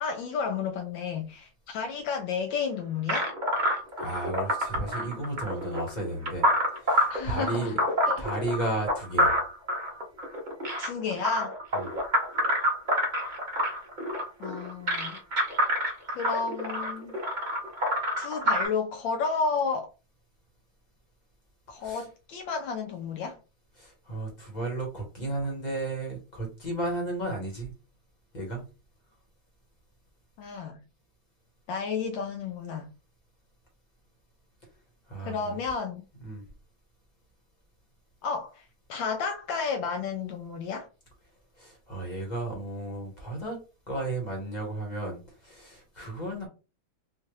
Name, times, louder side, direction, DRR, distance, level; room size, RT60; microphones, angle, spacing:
voice 1, 0.0-3.3 7.1-7.8 8.0-8.3 10.8-11.6 14.4-15.2 16.1-17.2 18.2-19.9 21.7-23.4 30.4-30.8 31.7-32.9 35.2-36.0 38.2-40.9, left 5 dB, 75° left, 1.2 m, -32 dB
sound 1, 3.1-18.7, equal, 50° right, 0.5 m, -27 dB
voice 2, 4.0-6.4 6.8-7.8 8.2-9.3 11.7-11.9 21.8-22.0 23.8-27.7 28.3-28.6 35.1-35.5 36.2-36.4 41.6-43.6 43.9-46.5, right 2 dB, 25° left, 1.1 m, -33 dB
4.2 x 2.4 x 3.1 m
omnidirectional pair, 2.3 m